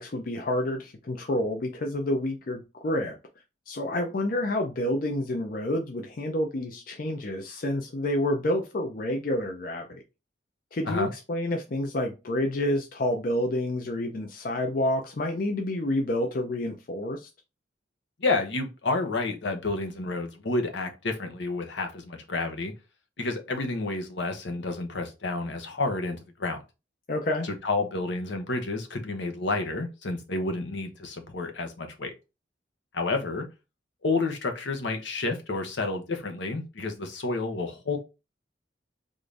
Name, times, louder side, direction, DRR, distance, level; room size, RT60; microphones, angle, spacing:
voice 1, 0.0-3.2 3.7-10.0 10.7-17.3 27.1-27.5, left 1 dB, 50° left, 0.5 m, -29 dB
voice 2, 18.2-22.7 23.2-26.6 27.4-32.1 32.9-33.5 34.0-38.0, left 3 dB, 85° left, 0.8 m, -30 dB
3.7 x 2.5 x 3.2 m
head